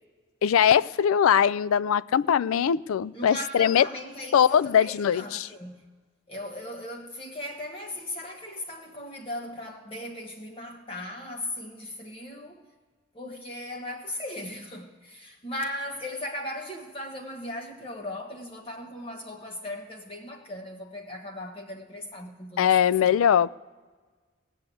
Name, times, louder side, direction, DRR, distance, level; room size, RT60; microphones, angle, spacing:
voice 1, 0.4-3.9 4.3-5.5 22.6-23.6, left 8 dB, 85° left, 0.3 m, -21 dB
voice 2, 3.1-5.9 6.3-12.7 13.1-23.2, left 1 dB, 25° left, 1.2 m, -38 dB
18.0 x 6.6 x 8.4 m
head